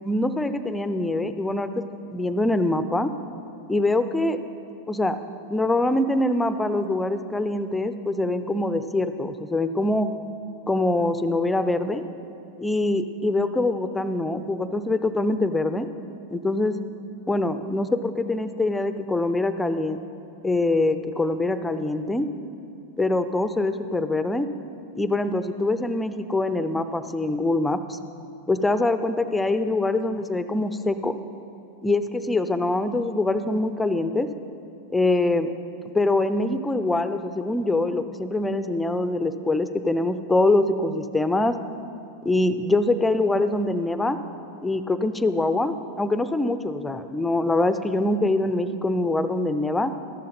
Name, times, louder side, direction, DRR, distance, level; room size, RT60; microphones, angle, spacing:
voice 1, 0.0-1.8 2.1-3.1 3.7-4.4 4.9-5.2 5.5-10.1 10.7-12.1 12.6-15.9 16.3-16.8 17.3-20.0 20.4-22.3 23.0-24.5 24.9-28.0 28.5-31.1 31.8-34.3 34.9-35.5 35.9-41.6 42.2-44.2 44.6-49.9, left 2 dB, 10° left, 11 dB, 0.6 m, -24 dB
13.5 x 11.5 x 4.1 m, 2.7 s
hypercardioid pair, 90°, 0 cm